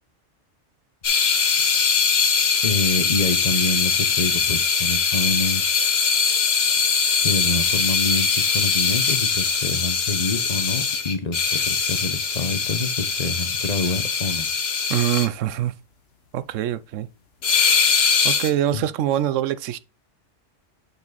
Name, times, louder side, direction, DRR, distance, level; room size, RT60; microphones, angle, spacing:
sound 1, 1.0-15.3 17.4-18.5, left 6 dB, 60° left, 1.2 m, -21 dB
voice 1, 2.6-6.0 7.2-14.9 18.7-18.9, left 3 dB, 35° left, 0.8 m, -27 dB
voice 2, 14.9-15.7 16.3-17.1 18.2-19.8, right 12 dB, 90° right, 1.0 m, -24 dB
7.1 x 5.0 x 4.0 m
omnidirectional pair, 1.3 m